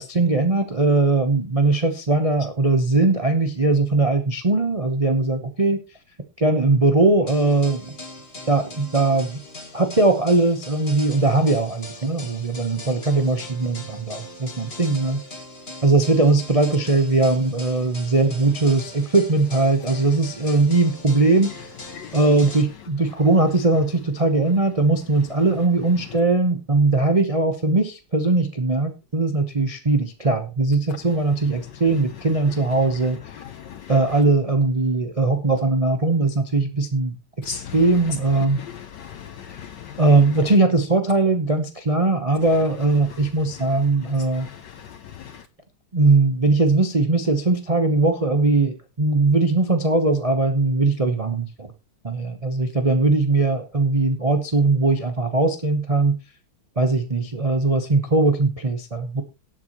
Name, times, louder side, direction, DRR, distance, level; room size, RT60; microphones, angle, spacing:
voice 1, 0.0-5.8 6.4-7.9 8.5-9.4 9.7-15.2 15.8-21.7 22.1-33.3 33.9-37.1 37.7-38.6 39.5-39.6 40.0-44.5 45.9-51.7 52.0-56.2 56.8-59.2, right 3 dB, 40° right, 0.4 m, -20 dB
sound 1, 7.3-22.6, left 2 dB, 30° left, 2.2 m, -40 dB
voice 2, 33.3-33.9 37.4-37.8 38.5-40.0 44.3-45.4, left 7 dB, 70° left, 1.1 m, -38 dB
18.0 x 8.2 x 3.0 m
omnidirectional pair, 2.4 m